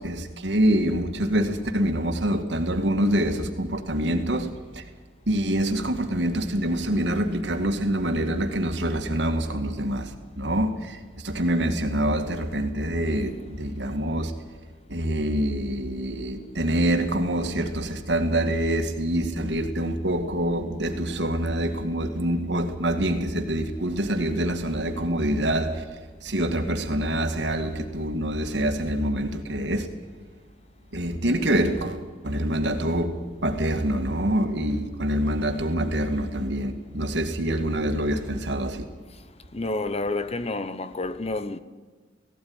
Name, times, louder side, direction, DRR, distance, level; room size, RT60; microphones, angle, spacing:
voice 1, 0.0-4.8 5.3-14.3 14.9-29.9 30.9-38.9, right 1 dB, 70° right, 2.2 m, -26 dB
voice 2, 39.5-41.6, left 2 dB, 35° left, 0.9 m, -29 dB
17.0 x 17.0 x 9.6 m
head